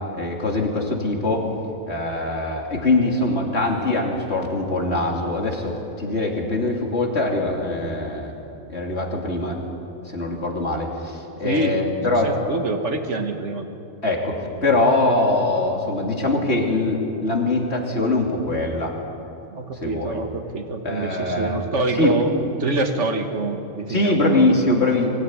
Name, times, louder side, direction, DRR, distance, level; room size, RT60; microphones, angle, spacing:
voice 1, 0.1-1.5 1.9-8.3 8.7-9.6 10.1-12.3 14.0-14.4 14.6-18.9 19.8-20.2 20.8-21.6 22.0-22.1 23.9-25.1, left 2 dB, 55° left, 0 dB, 3.2 m, -22 dB
voice 2, 11.4-11.8 12.2-13.7 19.5-24.5, right 2 dB, 65° right, 5 dB, 2.0 m, -25 dB
23.5 x 17.0 x 9.6 m, 2.8 s
omnidirectional pair, 1.3 m